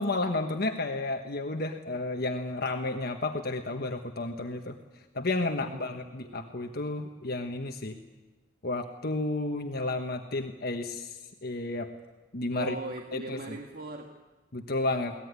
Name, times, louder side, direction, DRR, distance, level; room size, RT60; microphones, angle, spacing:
voice 1, 0.0-4.8 5.1-7.9 8.6-11.9 12.3-12.7 13.1-13.4 14.5-15.1, left 2 dB, 60° left, 5 dB, 1.3 m, -32 dB
voice 2, 5.6-6.6 12.5-14.2, right 2 dB, 55° right, 2 dB, 1.7 m, -41 dB
22.5 x 18.5 x 9.7 m, 1.2 s
head